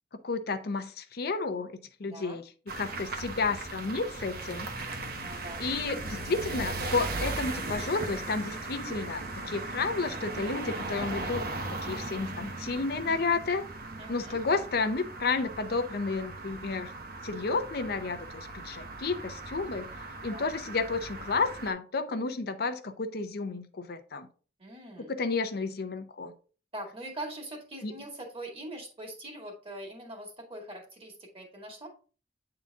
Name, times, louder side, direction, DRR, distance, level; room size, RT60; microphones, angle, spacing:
voice 1, 0.2-2.5 2.8-4.7 5.6-11.4 11.8-13.6 14.1-16.9 17.2-19.9 20.2-24.3 25.1-26.3 27.8-27.9, left 4 dB, 60° left, 9 dB, 0.6 m, -31 dB
voice 2, 2.0-2.4 2.9-3.0 5.2-5.6 14.0-14.4 20.3-20.5 24.6-25.1 26.7-31.9, right 1 dB, 30° right, 1 dB, 2.1 m, -42 dB
sound 1, 2.7-21.7, right 2 dB, 55° right, 1.0 m, -38 dB
8.7 x 3.9 x 3.5 m, 0.38 s
head